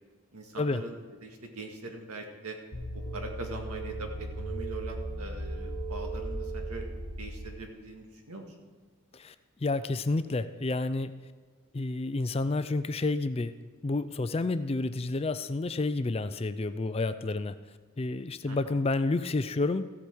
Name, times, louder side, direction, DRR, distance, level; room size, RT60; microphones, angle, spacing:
voice 1, 0.3-2.6 2.9-6.8 7.2-8.5 18.5-18.8, right 2 dB, 90° right, 3 dB, 1.8 m, -42 dB
sound 1, 2.7-7.7, right 1 dB, 55° left, 1.2 m, -36 dB
voice 2, 9.6-11.1 11.7-13.5 13.8-17.6 18.0-19.9, left 3 dB, 25° left, 12 dB, 0.4 m, -30 dB
14.5 x 8.1 x 4.5 m, 1.5 s
head